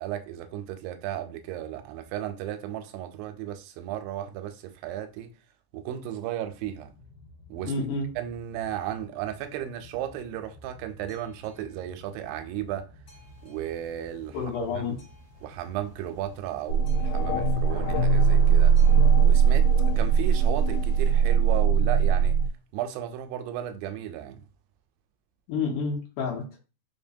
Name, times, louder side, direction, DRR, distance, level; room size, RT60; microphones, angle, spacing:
voice 1, 0.0-5.3 5.7-6.9 7.5-7.8 8.2-12.9 13.4-14.4 14.6-15.0 15.4-18.8 19.2-22.4 22.7-24.4, right 11 dB, 85° right, 2.2 m, -35 dB
Boat Water vehicle, 6.5-19.0, left 2 dB, 55° left, 1.2 m, -52 dB
voice 2, 7.6-8.1 14.3-15.0 25.5-26.6, left 4 dB, 75° left, 2.3 m, -29 dB
sound 1, 13.1-21.1, right 3 dB, 70° right, 1.3 m, -45 dB
sound 2, 16.7-22.5, right 6 dB, 90° left, 2.3 m, -20 dB
5.4 x 2.2 x 2.6 m
omnidirectional pair, 3.9 m